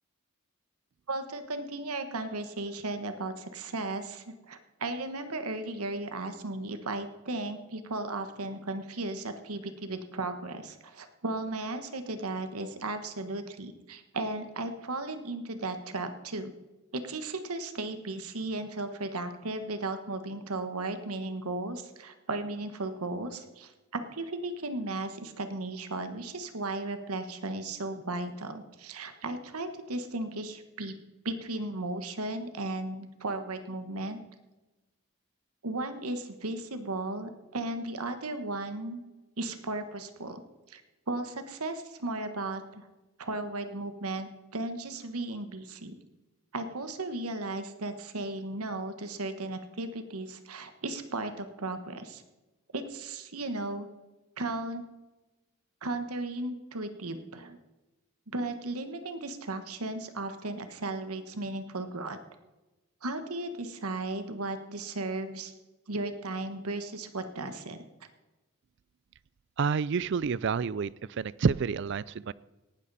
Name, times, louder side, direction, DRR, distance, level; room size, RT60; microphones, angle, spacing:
voice 1, 1.1-16.5 16.9-30.9 31.2-34.2 35.6-39.0 39.4-40.4 40.7-40.8 41.1-42.9 43.2-45.9 46.5-52.2 52.7-53.9 54.4-54.8 55.8-57.6 58.3-62.2 63.0-65.5 65.9-67.8, right 2 dB, 90° right, 8 dB, 1.3 m, -35 dB
voice 2, 69.6-72.3, right 5 dB, 55° right, 20 dB, 0.4 m, -29 dB
18.0 x 12.5 x 4.1 m, 1.1 s
head